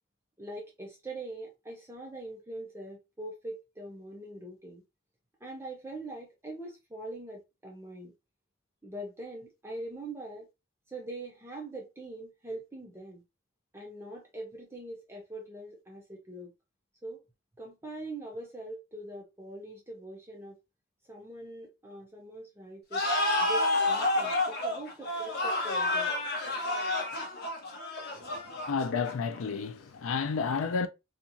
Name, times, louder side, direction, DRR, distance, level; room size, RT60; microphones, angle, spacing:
voice 1, 0.4-4.8 5.4-8.1 8.8-10.5 10.9-13.2 13.7-16.5 17.0-17.2 17.6-20.6 21.1-23.0 23.4-26.1, right 1 dB, 10° right, 0.5 m, -42 dB
sound 1, 22.9-29.4, left 2 dB, 50° left, 0.8 m, -29 dB
voice 2, 28.7-30.9, left 5 dB, 85° left, 0.4 m, -31 dB
2.8 x 2.4 x 2.5 m
head